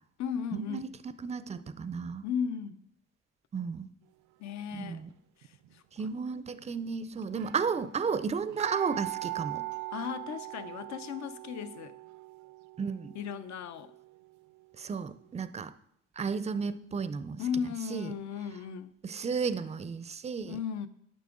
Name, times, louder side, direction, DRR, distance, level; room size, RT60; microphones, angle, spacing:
voice 1, 0.2-0.9 2.2-2.8 4.4-5.0 5.4-6.2 9.9-12.0 13.1-13.9 17.4-19.0 20.4-20.9, left 7 dB, 65° left, 0.6 m, -36 dB
voice 2, 1.2-2.2 3.5-3.9 4.7-5.1 6.0-9.6 12.8-13.1 14.8-15.7 16.2-17.4 17.9-18.1 19.0-20.6, right 5 dB, 20° right, 0.4 m, -33 dB
sound 1, 5.4-5.8 6.6-6.7 6.9-7.0 7.2-14.8 15.3-15.4, right 20 dB, 80° right, 0.4 m, -42 dB
9.5 x 6.0 x 3.7 m
cardioid pair, 90°, 30 cm